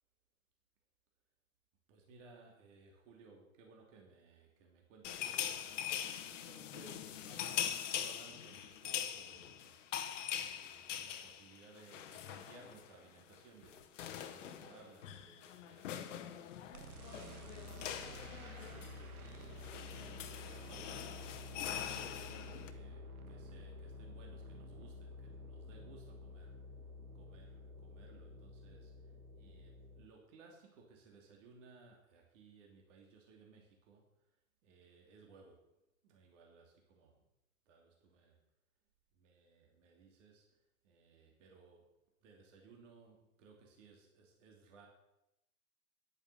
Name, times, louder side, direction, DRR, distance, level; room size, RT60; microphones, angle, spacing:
voice 1, 1.9-19.6 20.3-26.6 27.1-34.0 34.6-35.7 36.0-37.2 37.7-38.4 39.1-41.9 42.2-44.9, right 4 dB, 55° right, 1 dB, 3.0 m, -61 dB
sound 1, 5.0-12.9 13.2-13.4 13.6-22.7, left 10 dB, 55° left, 1.3 m, -43 dB
sound 2, 16.7-30.1, left 2 dB, 70° right, 1.6 m, -50 dB
10.5 x 8.9 x 6.8 m, 0.90 s
figure-of-eight pair, 105°, 44 cm